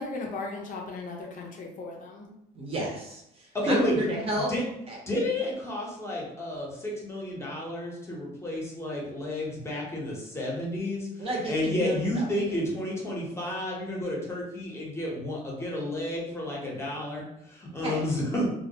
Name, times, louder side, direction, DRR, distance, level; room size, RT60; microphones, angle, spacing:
voice 1, 0.0-2.4, left 3 dB, 50° left, 0 dB, 0.5 m, -37 dB
voice 2, 2.5-4.5 4.9-5.0 11.2-12.4 17.8-18.0, right 1 dB, 35° right, -2 dB, 0.8 m, -31 dB
voice 3, 3.5-4.0 4.4-4.6 5.1-18.4, left 1 dB, 15° left, -3 dB, 0.8 m, -31 dB
2.2 x 2.0 x 2.7 m, 0.81 s
cardioid pair, 110°, 17 cm